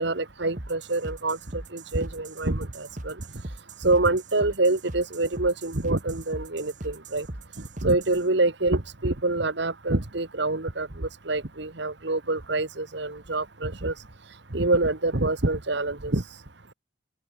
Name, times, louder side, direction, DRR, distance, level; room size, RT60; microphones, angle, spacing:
voice 1, 0.0-1.4 1.7-3.1 3.8-7.3 7.8-13.9 14.5-16.2, right 2 dB, 55° right, 1.5 m, -26 dB
sound 1, 0.6-8.2, right 1 dB, 40° right, 1.6 m, -40 dB
open air
head